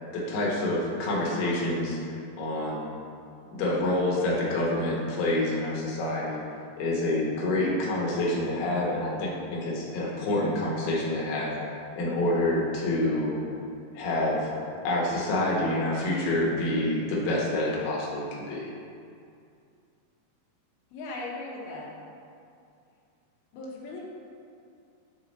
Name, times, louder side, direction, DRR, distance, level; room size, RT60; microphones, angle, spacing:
voice 1, 0.1-2.0 2.4-2.9 3.5-6.4 6.8-11.5 12.0-13.4 13.9-14.4 14.8-18.7, left 1 dB, 65° left, -4 dB, 2.3 m, -27 dB
voice 2, 20.9-21.9 23.5-24.1, left 2 dB, 85° left, -3 dB, 2.8 m, -38 dB
8.7 x 3.9 x 4.0 m, 2.4 s
omnidirectional pair, 4.1 m